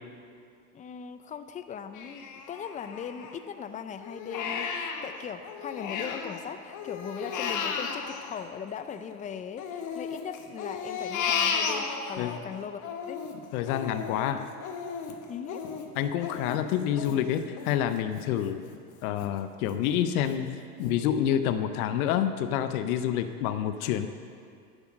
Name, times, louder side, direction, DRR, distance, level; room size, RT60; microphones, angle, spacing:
voice 1, 0.7-12.8 13.1-13.2 15.3-15.6, left 7 dB, 20° left, 11 dB, 0.4 m, -39 dB
Crying sobbing, 1.9-3.6 4.0-6.4 6.7-9.1 9.6-12.4 12.8-18.3 18.7-18.8 19.2-19.8 20.3-20.4 20.8-21.0, left 6 dB, 40° left, 1.2 m, -34 dB
voice 2, 13.5-14.5 16.0-18.6 19.0-24.1, left 10 dB, 70° left, 10 dB, 0.7 m, -28 dB
9.9 x 8.0 x 6.3 m, 2.3 s
supercardioid pair, 105°, 45 cm